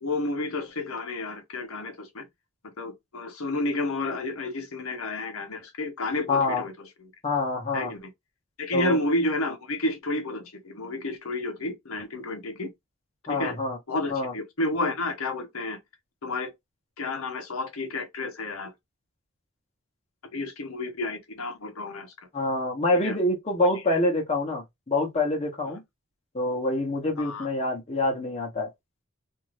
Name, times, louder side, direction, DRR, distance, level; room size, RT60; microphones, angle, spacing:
voice 1, 0.0-2.3 2.8-7.1 7.7-8.1 8.6-12.7 13.3-13.6 13.9-15.8 16.2-16.5 17.0-18.7 20.3-22.1 22.9-23.2 23.9-24.0 27.2-27.5, left 2 dB, 80° left, 0.9 m, -31 dB
voice 2, 6.3-6.6 7.2-7.9 8.7-9.0 13.3-13.8 14.1-14.3 22.3-25.8 26.3-28.7, left 2 dB, 30° left, 1.0 m, -26 dB
2.7 x 2.5 x 3.1 m
head